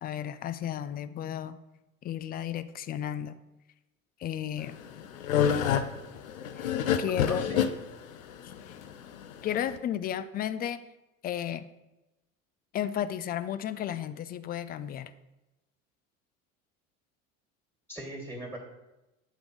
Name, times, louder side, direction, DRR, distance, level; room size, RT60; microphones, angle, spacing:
voice 1, 0.0-1.6 2.0-3.3 4.2-4.8 6.6-6.7 7.0-7.7 8.4-8.5 9.4-10.8 11.2-11.7 12.7-15.1, left 10 dB, 25° left, 12 dB, 0.3 m, -33 dB
sound 1, 4.6-9.8, left 8 dB, 80° left, 0.6 m, -28 dB
voice 2, 7.2-7.7 17.9-18.6, right 1 dB, 5° right, 0 dB, 2.0 m, -39 dB
8.2 x 3.4 x 6.2 m, 0.99 s
hypercardioid pair, 75°, 41 cm